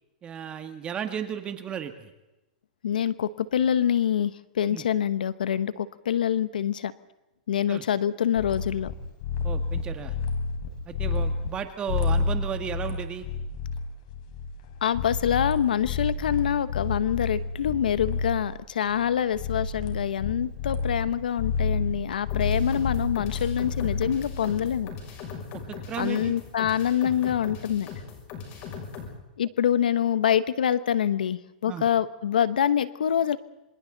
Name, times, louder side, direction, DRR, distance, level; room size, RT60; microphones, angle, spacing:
voice 1, 0.2-2.1 4.7-4.8 7.7-7.8 9.4-10.2 10.9-13.3 25.5-26.4 31.7-31.9, right 8 dB, 20° right, 7 dB, 1.8 m, -34 dB
voice 2, 2.8-6.9 7.5-8.9 14.8-24.9 26.0-27.9 29.4-33.4, left 9 dB, 85° left, 15 dB, 1.1 m, -25 dB
sound 1, 8.4-8.9 9.2-11.5 11.9-18.6 18.8-21.1 21.4-25.1, left 4 dB, 60° left, 5.1 m, -30 dB
sound 2, 22.3-29.1, left 6 dB, 40° left, 6.5 m, -40 dB
26.5 x 26.5 x 4.0 m, 0.99 s
hypercardioid pair, 140°, 5 cm